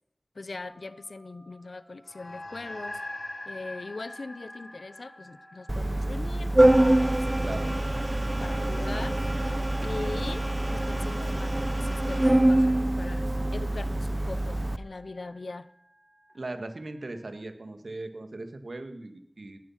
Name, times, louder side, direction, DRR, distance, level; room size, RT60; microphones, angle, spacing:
voice 1, 0.3-3.0 3.4-7.9 8.4-9.2 9.8-15.7, left 3 dB, 75° left, 0.8 m, -40 dB
Telephone, 0.6-17.3, equal, 20° left, 7.7 m, -60 dB
sound 1, 2.1-6.8, left 1 dB, 50° left, 4.1 m, -42 dB
Organ, 5.7-14.8, right 1 dB, 25° right, 0.7 m, -25 dB
voice 2, 7.3-7.8 8.5-9.1 16.3-19.6, right 2 dB, 70° right, 2.2 m, -39 dB
19.5 x 12.0 x 6.0 m
wide cardioid pair, 50°, 0 cm